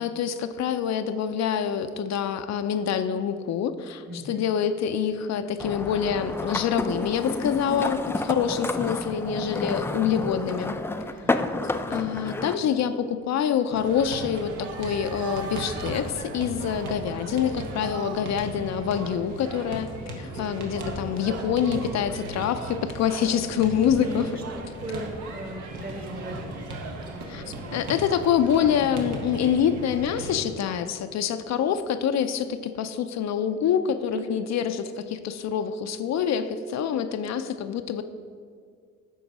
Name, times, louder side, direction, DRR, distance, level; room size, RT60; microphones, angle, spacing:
voice 1, 0.0-10.8 11.9-24.4 27.3-27.4 27.7-38.0, left 8 dB, 65° left, 9 dB, 0.5 m, -26 dB
voice 2, 4.1-4.5 11.2-11.6 17.8-18.1 24.3-26.6 26.9-27.6 34.1-34.4, right 1 dB, 30° right, 3 dB, 1.4 m, -39 dB
sound 1, 5.6-12.6, left 2 dB, 10° left, 0.3 m, -30 dB
sound 2, 13.7-21.7 22.1-23.4 24.0-29.0, right 5 dB, 55° right, 0.9 m, -41 dB
sound 3, 13.7-30.4, right 1 dB, 85° right, 1.3 m, -37 dB
9.3 x 3.9 x 6.0 m, 2.1 s
cardioid pair, 90°, 30 cm